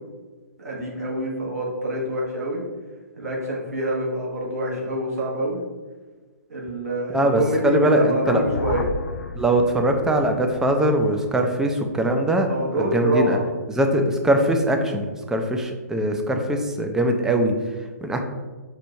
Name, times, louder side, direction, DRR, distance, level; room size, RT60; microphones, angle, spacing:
voice 1, 0.6-2.6 3.2-5.6 6.5-8.9 12.5-13.4, right 1 dB, 70° right, -3 dB, 1.4 m, -26 dB
voice 2, 7.1-8.4 9.3-12.5 12.7-13.4 13.7-18.2, right 1 dB, 5° right, 4 dB, 0.4 m, -21 dB
sound 1, 8.2-12.5, left 3 dB, 70° left, 0.4 m, -33 dB
4.4 x 2.5 x 4.3 m, 1.3 s
figure-of-eight pair, 125°, 9 cm